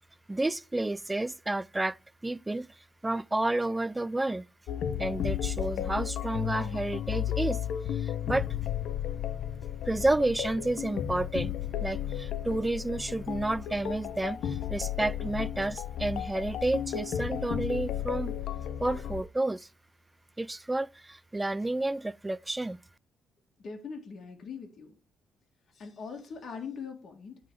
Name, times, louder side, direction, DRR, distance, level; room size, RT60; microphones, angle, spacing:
voice 1, 0.3-2.0 2.2-2.7 3.0-4.5 5.0-7.6 7.9-8.5 9.9-11.5 11.8-18.3 18.8-19.7 20.4-22.8, right 2 dB, 15° right, 0.3 m, -30 dB
sound 1, 4.7-19.2, left 10 dB, 80° left, 0.7 m, -33 dB
voice 2, 23.6-25.0 25.7-27.4, left 5 dB, 55° left, 1.9 m, -42 dB
9.1 x 3.9 x 4.9 m
cardioid pair, 90°, 0 cm